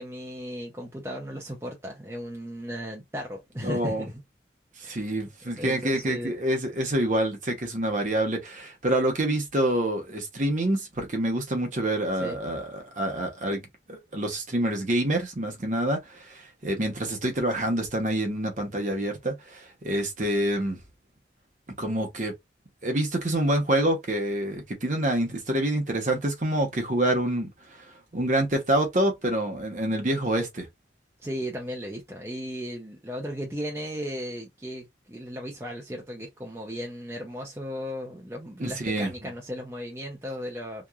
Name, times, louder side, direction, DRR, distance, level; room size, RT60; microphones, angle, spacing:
voice 1, 0.0-4.2 4.8-5.1 5.6-6.3 12.2-12.4 31.2-40.9, equal, 15° right, 0.5 m, -36 dB
voice 2, 3.6-4.0 4.8-20.8 21.8-22.3 22.8-27.5 28.1-30.7 38.6-39.1, right 1 dB, 45° right, 0.8 m, -27 dB
2.9 x 2.2 x 2.3 m
head